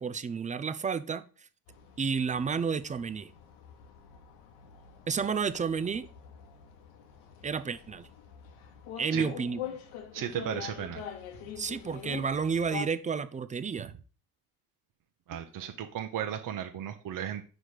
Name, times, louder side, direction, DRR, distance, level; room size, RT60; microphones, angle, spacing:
voice 1, 0.0-1.2 2.0-3.3 5.1-6.1 7.4-8.1 9.0-9.6 11.6-13.9, right 6 dB, 20° right, 12 dB, 0.3 m, -31 dB
sound 1, 1.7-12.9, left 8 dB, 80° left, 1.1 m, -44 dB
voice 2, 10.1-11.0 15.3-17.4, right 10 dB, 45° right, 5 dB, 0.7 m, -35 dB
4.9 x 4.2 x 4.7 m, 0.39 s
supercardioid pair, 75°, 48 cm